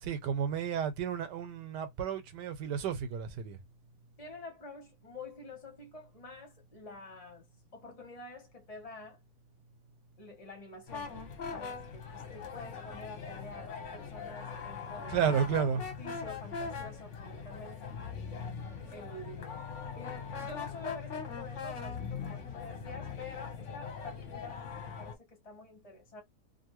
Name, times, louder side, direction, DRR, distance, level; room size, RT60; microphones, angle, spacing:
voice 1, 0.0-3.6 15.1-15.8, right 7 dB, 80° right, 1.3 m, -32 dB
voice 2, 4.2-9.2 10.2-11.1 11.4-18.0 18.9-19.6 19.9-26.2, left 2 dB, 25° left, 1.1 m, -48 dB
sound 1, 10.9-25.1, left 6 dB, 50° left, 1.1 m, -41 dB
2.7 x 2.7 x 3.0 m
omnidirectional pair, 1.8 m